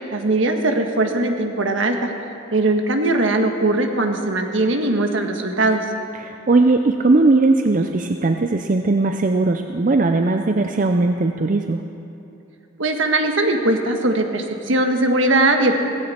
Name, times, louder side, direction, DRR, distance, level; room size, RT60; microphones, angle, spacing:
voice 1, 0.1-2.1 2.5-5.8 12.8-15.7, right 2 dB, 70° right, 4 dB, 1.4 m, -20 dB
voice 2, 6.1-11.8, right 3 dB, 40° right, 6 dB, 0.5 m, -18 dB
17.5 x 15.5 x 4.3 m, 2.8 s
head